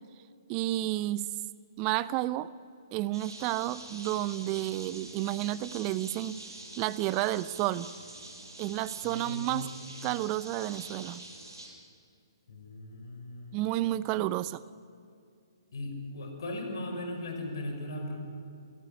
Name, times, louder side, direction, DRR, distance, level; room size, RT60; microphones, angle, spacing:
voice 1, 0.5-1.3 1.8-2.5 2.9-6.4 6.8-7.9 8.6-9.7 10.0-11.2 13.5-14.6, right 15 dB, 30° right, 18 dB, 0.6 m, -31 dB
sound 1, 3.1-11.7, right 2 dB, 75° right, 6.8 m, -46 dB
voice 2, 9.0-9.6 12.5-13.6 15.7-18.2, left 1 dB, 60° left, 4 dB, 5.5 m, -38 dB
27.5 x 16.5 x 9.8 m, 2.4 s
figure-of-eight pair, 130°, 2 cm